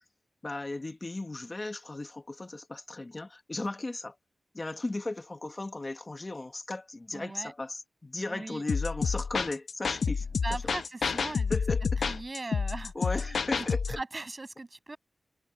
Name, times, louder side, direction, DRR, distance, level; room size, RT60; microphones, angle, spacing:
voice 1, 0.4-4.2 4.5-10.2 10.5-10.6 11.5-12.0 12.9-14.0, left 2 dB, 30° left, 1.3 m, -36 dB
voice 2, 7.1-7.5 8.3-8.6 10.4-11.6 12.1-15.0, right 2 dB, 30° right, 6.7 m, -39 dB
sound 1, 8.7-14.0, left 5 dB, 80° left, 1.2 m, -29 dB
wide cardioid pair, 100°, 0 cm